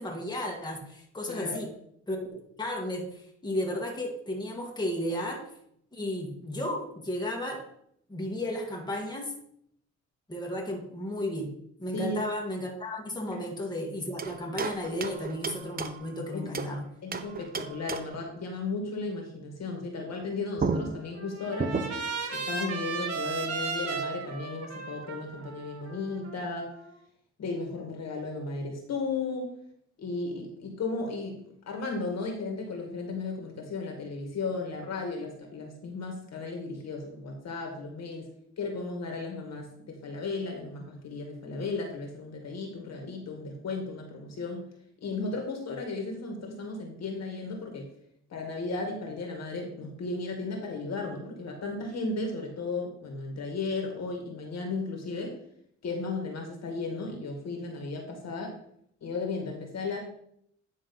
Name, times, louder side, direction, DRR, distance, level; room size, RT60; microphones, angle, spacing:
voice 1, 0.0-1.7 2.1-5.4 5.9-7.6 8.1-9.3 10.3-16.8, left 1 dB, 15° left, 0 dB, 1.9 m, -34 dB
voice 2, 1.3-1.7 11.9-12.2 13.3-13.4 16.3-16.5 17.0-21.9 22.3-26.7 27.4-29.5 30.0-31.4 31.7-38.3 38.6-44.7 45.0-47.9 48.3-55.4 55.8-58.6 59.0-60.0, left 3 dB, 60° left, 2 dB, 2.2 m, -35 dB
sound 1, 14.2-16.8 17.1-18.3 20.2-20.3 20.6-22.2, right 4 dB, 30° right, 0.7 m, -34 dB
Trumpet, 20.7-26.9, right 5 dB, 55° right, 1.8 m, -36 dB
9.9 x 3.6 x 5.5 m, 0.69 s
cardioid pair, 90°, 30 cm